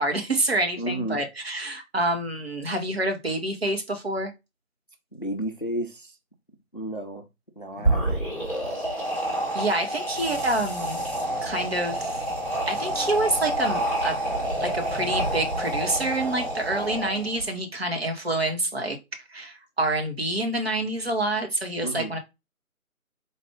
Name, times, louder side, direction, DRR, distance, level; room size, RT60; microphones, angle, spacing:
voice 1, 0.0-4.3 9.5-11.0 11.4-12.3 12.7-14.2 14.6-19.0 19.3-22.2, right 2 dB, 45° right, 0.9 m, -27 dB
voice 2, 0.8-1.2 5.1-6.2 6.7-7.3 7.6-8.2 21.8-22.1, right 1 dB, 40° left, 0.5 m, -32 dB
sound 1, 7.7-17.4, right 1 dB, 10° right, 1.2 m, -28 dB
sound 2, 10.1-17.6, equal, 80° right, 2.3 m, -41 dB
4.1 x 2.5 x 3.4 m
figure-of-eight pair, 165°, 43 cm